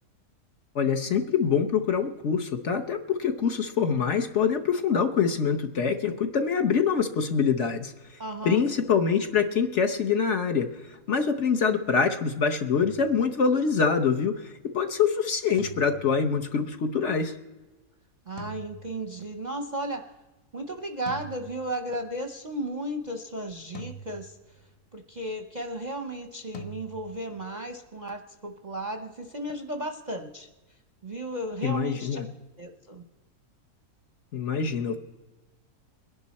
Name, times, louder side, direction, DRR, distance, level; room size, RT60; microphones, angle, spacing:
voice 1, 0.7-7.9 8.4-10.7 11.1-14.4 14.7-17.3 31.6-32.3 34.3-35.0, left 6 dB, 55° left, 6 dB, 1.1 m, -25 dB
voice 2, 8.2-8.6 11.6-11.7 18.3-20.0 20.5-30.5 31.0-32.2 32.6-33.0, right 1 dB, 40° right, 6 dB, 0.7 m, -35 dB
sound 1, 12.8-13.8 15.6-16.7 18.4-19.5 21.1-22.2 23.7-24.9 26.5-27.4, right 1 dB, 35° left, 0.6 m, -45 dB
22.0 x 11.0 x 4.2 m, 1.1 s
omnidirectional pair, 1.7 m